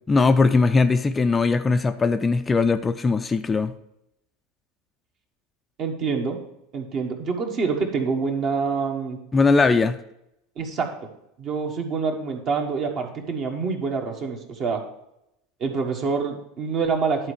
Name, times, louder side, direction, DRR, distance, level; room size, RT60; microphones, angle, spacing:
voice 1, 0.1-3.7 9.3-10.0, left 4 dB, 20° left, 9 dB, 0.5 m, -20 dB
voice 2, 5.8-6.4 6.7-9.2 10.6-11.1 11.4-14.8 15.6-17.3, right 5 dB, 45° right, 3 dB, 1.6 m, -26 dB
11.0 x 4.5 x 4.9 m, 0.82 s
hypercardioid pair, 85°, 0 cm